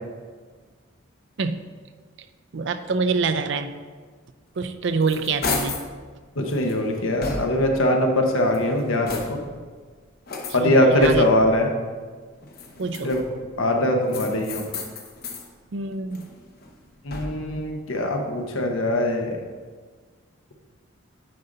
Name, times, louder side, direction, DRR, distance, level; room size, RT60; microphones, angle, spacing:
voice 1, 2.5-3.7 4.6-5.8 10.5-11.3 12.8-13.1 15.7-16.2, right 4 dB, 60° right, 9 dB, 0.5 m, -26 dB
sound 1, 4.6-5.9 6.5-7.8 8.4-9.6 10.3-11.5 12.4-13.5 14.1-15.5 15.9-17.6, left 3 dB, 45° left, 0.9 m, -34 dB
voice 2, 6.4-9.4 10.5-11.7 13.0-13.2 13.6-14.7 17.0-19.4, left 1 dB, 75° left, 3 dB, 1.1 m, -21 dB
9.2 x 5.4 x 3.9 m, 1.5 s
head